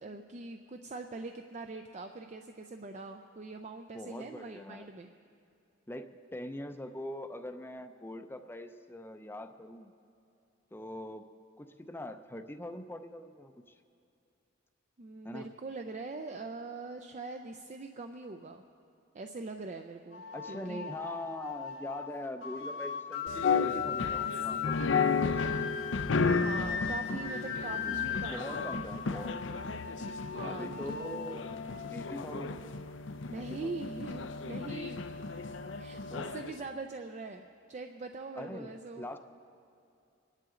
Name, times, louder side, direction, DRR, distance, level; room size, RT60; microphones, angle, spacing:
voice 1, 0.0-5.1 15.0-18.6 19.1-20.9 26.2-28.7 30.2-31.2 33.3-35.0 35.8-39.2, right 3 dB, 35° right, 5 dB, 0.5 m, -43 dB
voice 2, 3.9-4.9 5.9-9.9 10.7-11.3 11.6-13.8 15.2-15.5 20.3-25.5 27.7-28.0 28.3-29.6 30.4-31.4 31.9-32.5 33.3-33.8 36.1-36.3 38.4-39.2, left 1 dB, 10° left, 8 dB, 0.5 m, -42 dB
sound 1, 20.1-32.9, left 7 dB, 85° left, 1.5 m, -39 dB
sound 2, 23.3-36.6, left 4 dB, 65° left, 0.6 m, -34 dB
26.0 x 10.5 x 3.8 m, 2.5 s
head